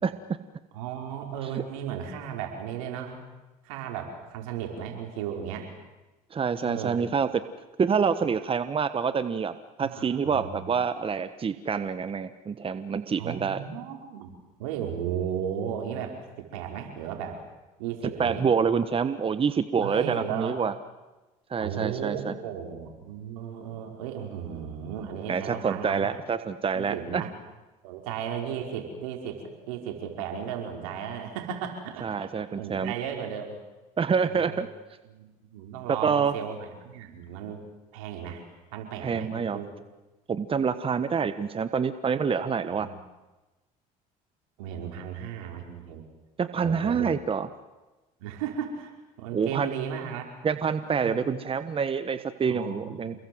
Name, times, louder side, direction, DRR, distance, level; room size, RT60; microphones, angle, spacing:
voice 1, 0.7-3.2 3.6-5.7 6.6-7.0 9.8-10.7 13.2-16.2 16.5-17.4 17.8-18.4 19.8-20.6 21.6-26.1 26.7-27.3 27.8-29.4 29.7-32.1 32.6-33.6 34.3-34.6 35.1-37.7 37.9-38.4 38.7-39.7 42.7-43.0 44.6-46.0 46.6-47.1 48.2-48.9 49.2-50.3 50.8-51.3 52.5-53.2, right 8 dB, 80° right, 3 dB, 5.2 m, -35 dB
voice 2, 6.3-7.3 7.8-9.5 9.8-13.6 18.2-20.7 21.5-22.3 25.3-27.2 32.0-32.9 34.0-34.7 36.0-36.3 39.0-39.6 40.3-42.9 46.4-47.5 49.3-49.7 50.4-53.2, right 6 dB, 30° right, 12 dB, 1.3 m, -27 dB
28.5 x 21.5 x 8.0 m, 1.1 s
hypercardioid pair, 75°, 18 cm